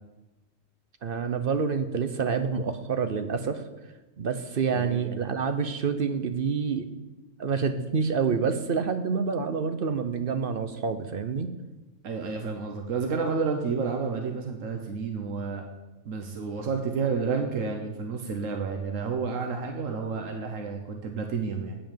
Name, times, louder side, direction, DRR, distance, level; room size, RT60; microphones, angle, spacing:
voice 1, 1.0-3.6 4.2-6.9 7.4-11.5, right 5 dB, 55° right, 9 dB, 0.8 m, -27 dB
voice 2, 4.7-5.2 12.0-15.6 16.1-21.8, right 5 dB, 85° right, 3 dB, 1.3 m, -30 dB
8.8 x 5.7 x 7.3 m, 1.1 s
omnidirectional pair, 1.3 m